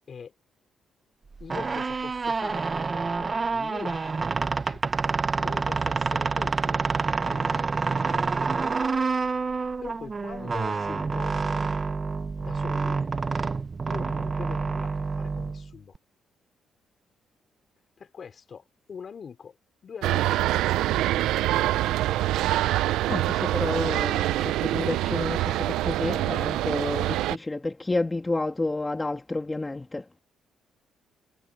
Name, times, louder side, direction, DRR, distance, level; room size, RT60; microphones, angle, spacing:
sound 1, 1.3-16.0, right 4 dB, 30° right, 0.8 m, -28 dB
voice 1, 1.4-4.8 5.4-6.8 7.2-8.7 9.5-11.7 12.4-13.0 13.9-16.0 18.0-19.6 19.8-20.5 20.9-21.7, left 6 dB, 50° left, 4.7 m, -43 dB
sound 2, 20.0-27.4, right 15 dB, 90° right, 0.5 m, -25 dB
voice 2, 23.0-30.2, left 2 dB, 15° left, 1.6 m, -30 dB
cardioid pair, 90°, 0 cm